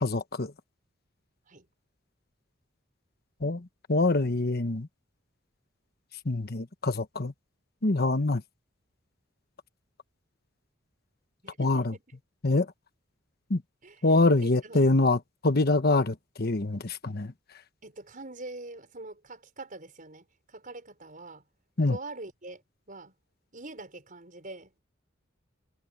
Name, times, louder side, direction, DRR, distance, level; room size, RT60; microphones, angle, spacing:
voice 1, 0.0-0.5 3.4-4.9 6.2-7.3 7.8-8.4 11.6-11.9 12.4-12.7 13.5-13.6 14.0-17.3 21.8-22.0, left 2 dB, 50° left, 1.2 m, -25 dB
voice 2, 3.9-4.4 8.1-8.4 11.4-12.0 13.8-14.1 14.4-14.9 17.8-21.4 21.9-22.6 22.9-23.1 23.5-24.7, right 2 dB, 45° right, 6.4 m, -44 dB
head